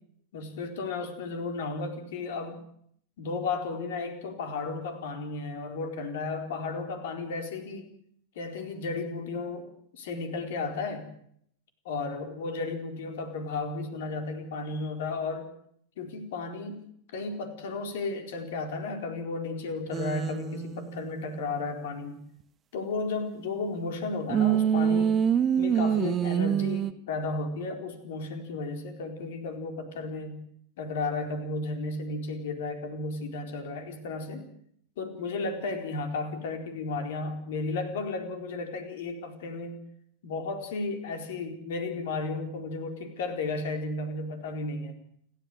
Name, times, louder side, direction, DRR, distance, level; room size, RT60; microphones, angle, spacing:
voice 1, 0.3-2.6 3.2-7.9 8.3-9.7 9.9-11.1 11.8-15.5 16.0-16.8 17.1-22.2 22.7-25.2 25.6-30.4 30.8-34.5 35.0-39.8 40.2-45.0, left 3 dB, 55° left, 6 dB, 4.3 m, -34 dB
sound 1, 19.9-21.5 24.3-26.9, right 8 dB, 25° right, 1.3 m, -26 dB
29.5 x 13.0 x 8.1 m, 0.66 s
figure-of-eight pair, 90°, 0 cm